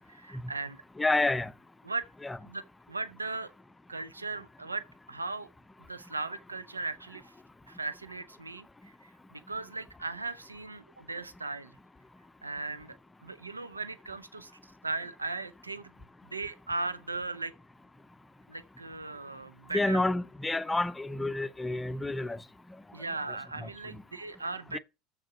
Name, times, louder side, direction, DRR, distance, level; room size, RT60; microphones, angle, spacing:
voice 1, 0.1-0.8 1.8-2.1 2.4-2.6 2.9-3.5 3.9-5.5 5.9-7.3 7.7-11.7 12.4-13.0 13.2-15.9 16.2-17.5 18.5-20.0 22.9-24.8, right 3 dB, 90° right, 0.6 m, -38 dB
voice 2, 1.0-1.5 2.2-2.4 19.7-22.4 23.6-23.7 24.7-24.8, left 2 dB, 10° left, 0.6 m, -29 dB
7.3 x 6.4 x 5.8 m
figure-of-eight pair, 75°, 0 cm